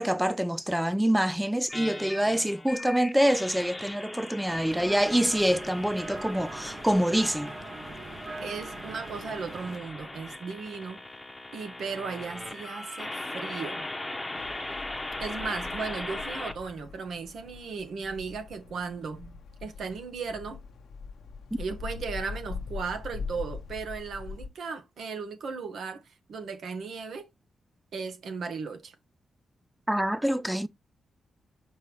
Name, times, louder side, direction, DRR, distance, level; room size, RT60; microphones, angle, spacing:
voice 1, 0.0-7.5 29.9-30.7, equal, 5° right, 0.4 m, -26 dB
sound 1, 1.7-16.5, left 2 dB, 10° left, 0.9 m, -39 dB
sound 2, 4.5-9.8, right 3 dB, 40° right, 1.0 m, -42 dB
voice 2, 8.4-11.0 11.5-13.9 15.2-20.6 21.6-27.2 27.9-28.9, right 5 dB, 70° right, 1.3 m, -36 dB
sound 3, 14.3-24.5, left 5 dB, 80° left, 0.9 m, -42 dB
5.5 x 5.4 x 3.1 m
wide cardioid pair, 125°, 0 cm